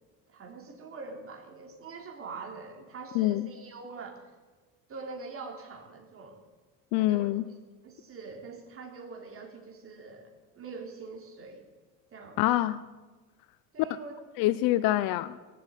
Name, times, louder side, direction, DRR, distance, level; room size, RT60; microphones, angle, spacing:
voice 1, 0.3-4.3 4.9-6.4 7.0-7.3 7.8-10.3 10.6-11.6 12.1-12.4 13.7-14.2, right 4 dB, 40° right, 1 dB, 3.5 m, -44 dB
voice 2, 3.1-3.5 6.9-7.5 12.4-12.8 14.4-15.4, left 15 dB, 80° left, 15 dB, 0.7 m, -26 dB
18.0 x 7.8 x 9.0 m, 1.3 s
cardioid pair, 120°, 34 cm